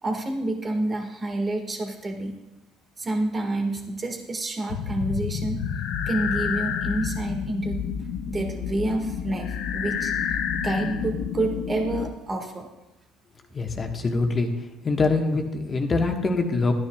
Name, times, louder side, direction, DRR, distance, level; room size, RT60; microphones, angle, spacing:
voice 1, 0.0-2.4 3.0-5.6 6.1-7.8 8.3-10.1 10.5-12.7, right 2 dB, 30° right, 3 dB, 1.7 m, -28 dB
sound 1, 4.7-12.1, left 7 dB, 70° left, 0.7 m, -29 dB
voice 2, 13.5-14.5 14.8-16.7, left 3 dB, 35° left, 4 dB, 1.3 m, -24 dB
12.5 x 9.6 x 2.3 m, 1.0 s
hypercardioid pair, 65°, 0 cm